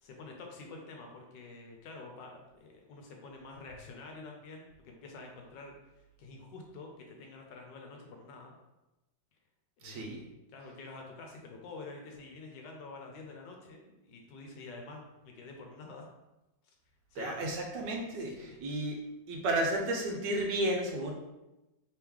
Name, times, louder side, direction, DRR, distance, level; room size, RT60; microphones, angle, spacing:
voice 1, 0.0-5.7 6.2-8.5 9.8-16.1 17.1-17.4 18.2-18.6, left 3 dB, 70° left, 1 dB, 1.2 m, -48 dB
voice 2, 9.8-10.2 17.1-19.0 19.3-21.1, right 1 dB, 70° right, 0 dB, 1.3 m, -32 dB
3.4 x 3.0 x 3.6 m, 1.0 s
omnidirectional pair, 2.1 m